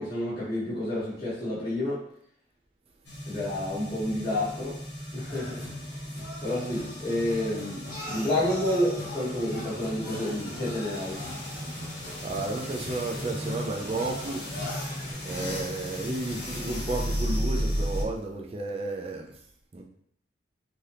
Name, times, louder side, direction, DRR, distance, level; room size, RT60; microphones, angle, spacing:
voice 1, 0.0-2.0 3.3-4.7 5.1-5.6 6.4-7.8 8.0-11.2, left 1 dB, 20° left, -13 dB, 1.2 m, -29 dB
sound 1, 3.0-18.0, equal, 75° left, 0.9 m, -35 dB
sound 2, 5.3-15.1, left 1 dB, 50° left, 1.1 m, -40 dB
voice 2, 12.2-14.4 15.2-19.3 19.7-19.8, right 2 dB, 30° right, 1 dB, 0.4 m, -32 dB
3.3 x 2.6 x 2.7 m, 0.68 s
head